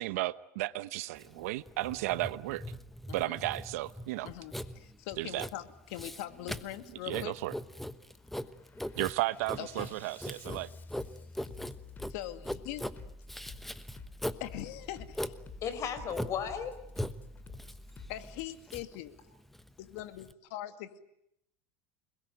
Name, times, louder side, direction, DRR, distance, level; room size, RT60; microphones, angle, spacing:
voice 1, 0.0-2.6 3.1-4.3 5.2-5.5 7.1-7.5 9.0-10.7, right 18 dB, 85° right, 1.0 m, -34 dB
Writing, 1.2-20.3, left 1 dB, 5° left, 1.1 m, -41 dB
Bass drum, 2.6-2.9 3.4-3.8 4.6-4.9 5.4-5.8 6.6-6.9 7.4-7.9 8.3-18.5, left 3 dB, 25° left, 2.7 m, -50 dB
voice 2, 3.1-3.4 4.2-7.4 9.6-9.9 12.1-12.8 14.4-15.3 18.1-19.2 19.8-21.0, left 13 dB, 70° left, 2.3 m, -42 dB
voice 3, 15.6-16.7, left 7 dB, 40° left, 4.7 m, -35 dB
29.0 x 21.0 x 9.2 m
supercardioid pair, 135°, 8 cm